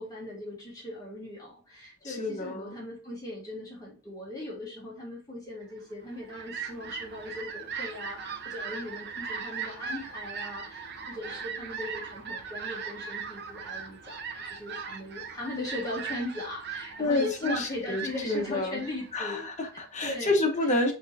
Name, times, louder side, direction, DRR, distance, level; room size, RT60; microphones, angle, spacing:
voice 1, 0.0-19.4 20.0-20.5, left 1 dB, 20° left, -4 dB, 1.6 m, -39 dB
voice 2, 2.0-2.7 17.0-18.8 19.1-20.9, left 2 dB, 35° left, 3 dB, 1.0 m, -29 dB
Fowl, 5.9-19.9, right 6 dB, 50° right, 0.7 m, -39 dB
5.9 x 3.1 x 2.7 m, 0.37 s
head